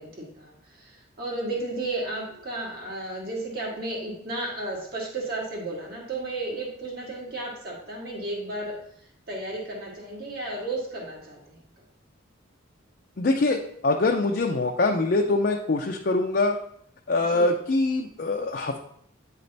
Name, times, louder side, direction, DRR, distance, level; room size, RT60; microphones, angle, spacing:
voice 1, 0.0-11.6 17.3-17.5, right 2 dB, 50° right, -2 dB, 1.6 m, -33 dB
voice 2, 13.2-16.6 17.1-18.8, left 2 dB, 50° left, 1 dB, 0.4 m, -24 dB
8.8 x 3.3 x 3.9 m, 0.68 s
head